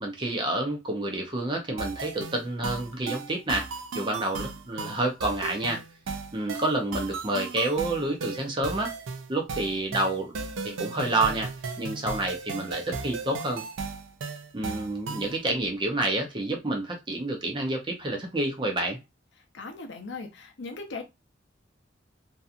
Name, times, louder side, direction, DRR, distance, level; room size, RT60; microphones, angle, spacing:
voice 1, 0.0-3.7 3.9-5.8 6.3-8.9 9.3-10.3 10.6-11.5 11.8-13.6 14.5-19.0, right 2 dB, 25° right, 0.6 m, -29 dB
sound 1, 1.8-15.4, right 4 dB, 85° right, 0.4 m, -36 dB
voice 2, 19.5-21.0, left 3 dB, 65° left, 0.6 m, -38 dB
2.7 x 2.3 x 2.4 m
head